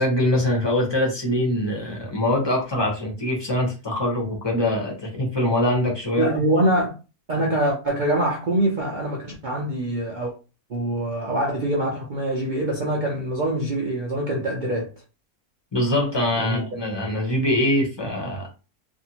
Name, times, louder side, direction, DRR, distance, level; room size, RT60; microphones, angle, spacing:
voice 1, 0.0-6.3 15.7-18.5, left 1 dB, 25° left, 0.6 m, -23 dB
voice 2, 6.2-6.9 7.3-10.3 10.7-14.9 16.4-16.6, right 1 dB, 70° right, 0.4 m, -24 dB
2.6 x 2.5 x 2.8 m
omnidirectional pair, 1.7 m